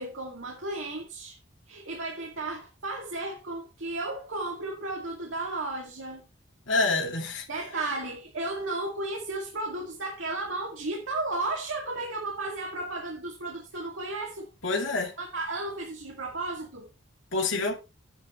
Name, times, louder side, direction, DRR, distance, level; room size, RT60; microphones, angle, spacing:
voice 1, 0.0-1.4 1.7-6.3 6.8-7.0 7.5-14.5 15.2-16.9, right 2 dB, 75° right, 2.3 m, -34 dB
voice 2, 6.7-7.4 14.6-15.1 17.3-17.7, left 3 dB, 70° left, 2.6 m, -27 dB
10.5 x 10.0 x 3.1 m
head